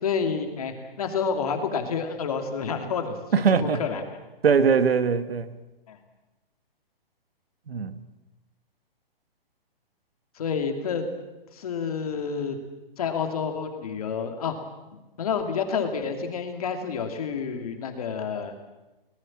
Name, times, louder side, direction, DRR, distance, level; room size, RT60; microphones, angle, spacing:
voice 1, 0.0-4.0 5.9-6.0 10.4-11.1 11.5-12.6 13.0-14.5 15.2-18.5, left 6 dB, 40° left, 5 dB, 2.7 m, -29 dB
voice 2, 3.3-3.8 4.4-5.6 7.7-8.0, right 6 dB, 90° right, 11 dB, 1.8 m, -21 dB
22.5 x 19.5 x 7.5 m, 1.0 s
hypercardioid pair, 180°, 29 cm